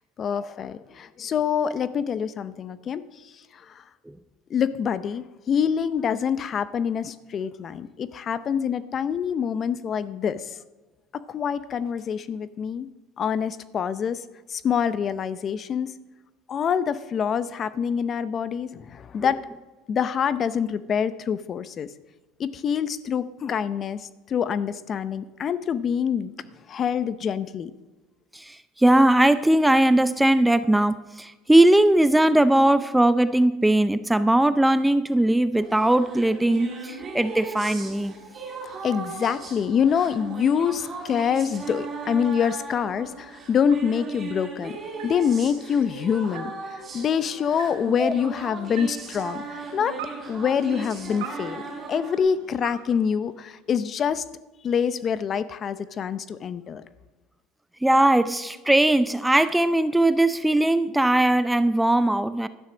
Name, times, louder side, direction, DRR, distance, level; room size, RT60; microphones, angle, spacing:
voice 1, 0.2-3.0 3.5-3.8 4.5-10.6 11.1-12.9 13.2-14.2 14.5-15.9 16.5-19.4 19.9-21.9 22.4-26.3 26.7-27.7 38.8-44.8 45.0-50.0 50.3-54.2 54.6-56.8, left 7 dB, 40° left, 0.6 m, -26 dB
voice 2, 28.3-38.1 48.0-48.1 57.8-62.5, right 1 dB, 5° right, 0.5 m, -19 dB
sound 1, 35.5-52.2, right 3 dB, 25° right, 4.7 m, -37 dB
sound 2, 36.2-53.9, right 7 dB, 85° right, 2.2 m, -47 dB
12.0 x 9.6 x 6.2 m
supercardioid pair, 110°, 0 cm